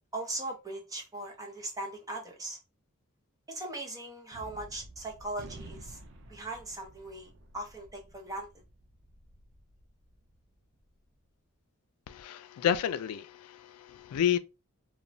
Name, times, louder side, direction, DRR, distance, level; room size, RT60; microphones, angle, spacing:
voice 1, 0.1-2.6 3.5-6.0 6.3-8.5, right 2 dB, 15° right, 0.6 m, -39 dB
Gunshot gunfire, 4.3-10.9, right 1 dB, 55° right, 0.4 m, -51 dB
voice 2, 12.1-14.4, left 9 dB, 90° left, 0.3 m, -30 dB
3.0 x 2.2 x 2.5 m
head